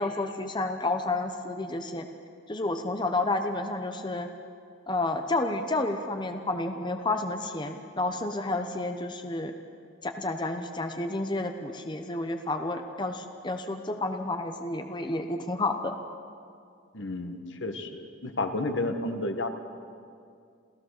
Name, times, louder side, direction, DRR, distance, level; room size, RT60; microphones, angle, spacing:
voice 1, 0.0-2.1 2.5-4.3 4.9-9.5 10.0-15.9, left 2 dB, 25° left, 6 dB, 0.9 m, -30 dB
voice 2, 16.9-19.5, left 2 dB, 70° left, 7 dB, 1.6 m, -31 dB
28.0 x 15.5 x 6.6 m, 2.3 s
head